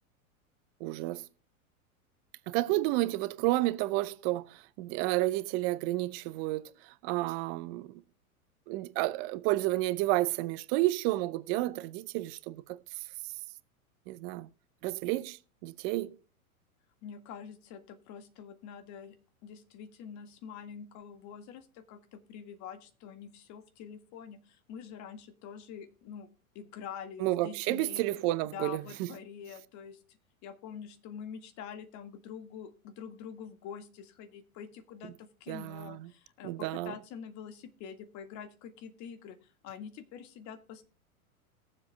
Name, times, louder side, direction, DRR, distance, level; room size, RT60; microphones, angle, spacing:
voice 1, 0.8-1.2 2.5-6.7 7.0-7.9 8.7-12.8 14.1-14.5 14.8-15.4 15.6-16.2 27.2-29.1 35.5-36.1 36.4-36.9, right 17 dB, 40° right, 0.6 m, -31 dB
voice 2, 17.0-19.2 19.4-26.3 26.6-28.1 28.4-30.2 30.4-40.8, left 7 dB, 40° left, 1.8 m, -46 dB
20.5 x 7.6 x 2.2 m
hypercardioid pair, 100°, 43 cm